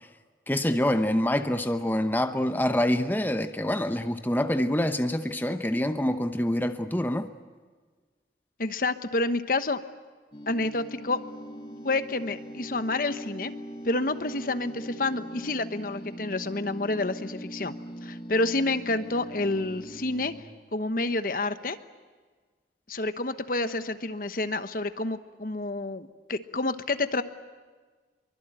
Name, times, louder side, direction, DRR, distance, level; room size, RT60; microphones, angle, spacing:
voice 1, 0.5-7.3, left 1 dB, 10° left, 8 dB, 0.9 m, -26 dB
voice 2, 8.6-9.8 10.5-11.2 11.8-13.5 13.8-17.7 18.0-20.3 20.7-21.8 22.9-27.2, left 2 dB, 50° left, 11 dB, 1.1 m, -29 dB
sound 1, 10.3-20.4, right 1 dB, 30° left, 2.2 m, -41 dB
25.0 x 24.0 x 8.9 m, 1.4 s
head